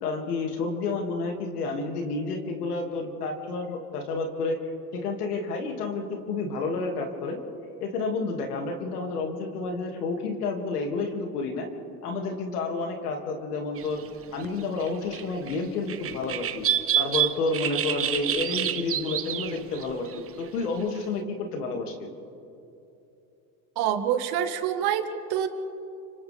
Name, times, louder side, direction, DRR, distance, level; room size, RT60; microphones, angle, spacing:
voice 1, 0.0-4.6 4.9-7.4 7.8-11.7 12.0-14.0 14.3-16.7 17.0-20.1 20.4-22.1, left 3 dB, 90° left, 3 dB, 2.6 m, -30 dB
sound 1, 13.8-14.1 14.4-14.5 14.8-15.6 15.9-20.3 20.6-20.8, right 10 dB, 30° right, 0.9 m, -28 dB
voice 2, 23.8-25.5, right 9 dB, 55° right, 7 dB, 1.8 m, -26 dB
29.5 x 25.5 x 3.6 m, 2.8 s
hypercardioid pair, 95°, 45 cm